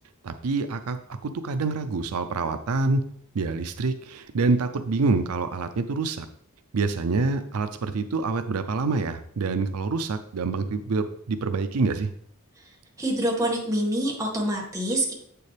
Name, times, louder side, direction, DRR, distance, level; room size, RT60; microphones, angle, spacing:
voice 1, 0.2-3.0 3.3-6.3 6.7-12.1, right 3 dB, 75° right, 9 dB, 0.5 m, -26 dB
voice 2, 13.0-15.1, right 1 dB, 15° right, -2 dB, 1.8 m, -26 dB
8.2 x 6.8 x 3.3 m, 0.66 s
head